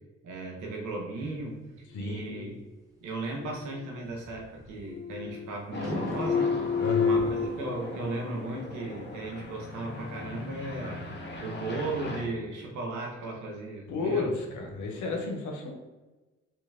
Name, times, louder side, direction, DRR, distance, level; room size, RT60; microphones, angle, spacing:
voice 1, 0.2-1.6 2.0-2.5 3.0-6.5 7.0-11.0 11.4-14.4, right 2 dB, 80° right, 0 dB, 1.0 m, -36 dB
voice 2, 1.9-2.5 6.8-7.2 13.9-15.7, left 3 dB, 80° left, 2 dB, 0.8 m, -32 dB
sound 1, 3.4-4.3 4.6-5.6 5.8-7.5, left 5 dB, 10° right, 1.2 m, -29 dB
sound 2, 5.7-12.2, left 2 dB, 35° left, 0.8 m, -39 dB
3.2 x 2.9 x 3.5 m, 1.2 s
hypercardioid pair, 50°, 30 cm